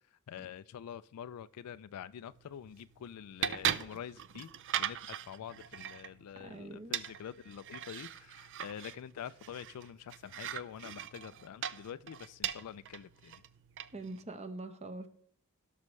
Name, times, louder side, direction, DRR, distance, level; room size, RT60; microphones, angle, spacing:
voice 1, 0.3-4.5 4.8-13.4, left 9 dB, 85° left, 0.3 m, -46 dB
sound 1, 2.3-14.2, right 10 dB, 60° right, 0.5 m, -40 dB
voice 2, 6.4-7.0 13.9-15.1, right 2 dB, 30° right, 0.8 m, -43 dB
17.5 x 6.2 x 3.2 m
head